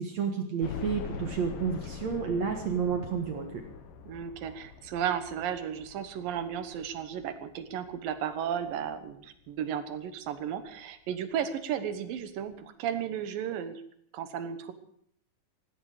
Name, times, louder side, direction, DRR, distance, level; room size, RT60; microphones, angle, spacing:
voice 1, 0.0-3.6, right 6 dB, 60° right, 3 dB, 2.5 m, -30 dB
sound 1, 0.6-9.5 10.0-10.1 10.5-10.6 11.8-11.9 12.1-12.2, left 7 dB, 75° left, 3.1 m, -44 dB
voice 2, 4.1-13.8 14.1-14.7, right 9 dB, 85° right, 10 dB, 2.9 m, -34 dB
17.0 x 16.0 x 4.9 m, 0.67 s
omnidirectional pair, 3.9 m